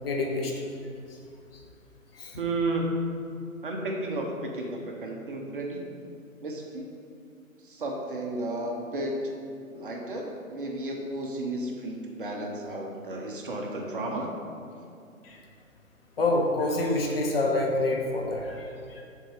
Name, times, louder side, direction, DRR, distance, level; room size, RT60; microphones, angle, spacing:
voice 1, 0.0-0.5 2.1-2.4 15.2-15.4 16.2-19.0, left 2 dB, 45° left, 0 dB, 1.0 m, -27 dB
voice 2, 2.4-3.0 3.6-5.8 6.4-6.9 7.6-9.3 9.7-14.4, right 1 dB, 40° right, 1 dB, 0.7 m, -32 dB
6.5 x 3.7 x 4.9 m, 2.5 s
figure-of-eight pair, 145°, 42 cm